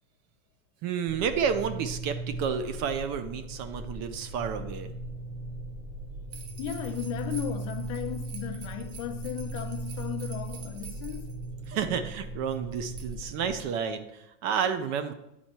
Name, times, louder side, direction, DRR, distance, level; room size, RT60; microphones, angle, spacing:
voice 1, 0.8-4.9 11.7-15.1, right 7 dB, 40° right, 0.7 m, -30 dB
sound 1, 1.1-13.6, right 2 dB, 60° right, 2.1 m, -38 dB
sound 2, 6.3-11.7 12.5-13.7, right 6 dB, 80° right, 1.3 m, -48 dB
voice 2, 6.6-11.4, left 10 dB, 45° left, 0.8 m, -36 dB
9.3 x 4.2 x 4.4 m
supercardioid pair, 135°, 42 cm